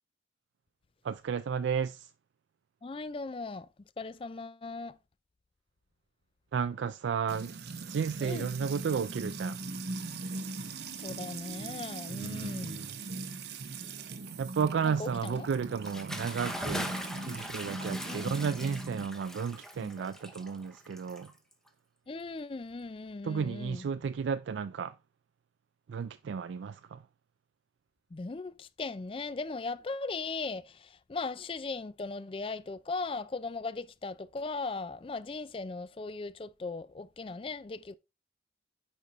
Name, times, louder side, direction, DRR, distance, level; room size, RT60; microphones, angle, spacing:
voice 1, 1.0-2.1 6.5-7.5 7.9-9.6 12.2-12.9 14.4-16.9 17.3-21.3 23.2-24.9 25.9-27.0, right 6 dB, 85° right, 0.3 m, -33 dB
voice 2, 2.8-3.7 4.0-5.0 8.2-8.5 10.9-12.8 14.8-15.5 17.2-17.4 18.1-18.3 19.8-19.9 22.1-23.9 28.1-38.0, left 3 dB, 30° left, 0.4 m, -38 dB
Music / Water tap faucet / Trickle dribble, 7.3-19.1, right 3 dB, 65° right, 0.9 m, -40 dB
Bathtub (filling or washing) / Splash splatter, 15.7-21.7, equal, 5° left, 0.7 m, -41 dB
9.5 x 5.4 x 3.1 m
head